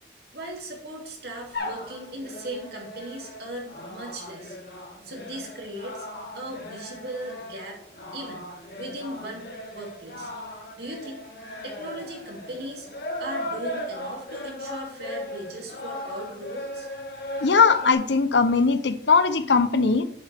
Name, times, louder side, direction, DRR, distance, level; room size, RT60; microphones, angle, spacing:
voice 1, 0.3-4.6 5.0-6.1 6.3-7.8 8.1-8.4 8.8-10.3 10.8-11.2 11.6-12.9 13.2-16.9, right 1 dB, 60° right, -1 dB, 3.1 m, -38 dB
sound 1, 1.5-17.9, left 1 dB, 60° left, 2.5 m, -37 dB
voice 2, 17.4-20.0, left 4 dB, 80° left, 12 dB, 0.8 m, -20 dB
10.5 x 9.6 x 3.6 m, 0.69 s
head